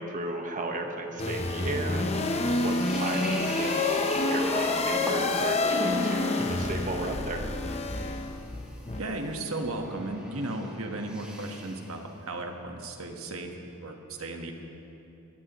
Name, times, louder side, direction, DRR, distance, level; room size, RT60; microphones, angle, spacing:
voice 1, 0.0-2.1 2.6-3.9 4.3-7.5, right 2 dB, 35° right, 3 dB, 1.3 m, -34 dB
sound 1, 1.2-9.0, left 2 dB, 30° left, 0.8 m, -28 dB
sound 2, 2.1-11.9, equal, 5° right, 2.1 m, -40 dB
voice 2, 9.0-14.5, right 2 dB, 70° right, 3 dB, 1.4 m, -35 dB
20.5 x 15.5 x 3.1 m, 2.8 s
head